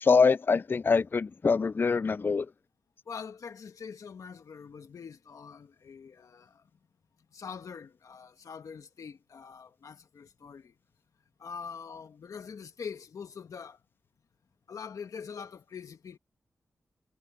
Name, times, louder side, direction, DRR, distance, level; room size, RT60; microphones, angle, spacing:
voice 1, 0.0-2.5, left 4 dB, 40° left, 0.3 m, -24 dB
voice 2, 3.0-6.6 7.3-10.7 11.4-13.8 14.7-16.2, left 6 dB, 80° left, 1.6 m, -44 dB
cardioid pair, 60°, 6 cm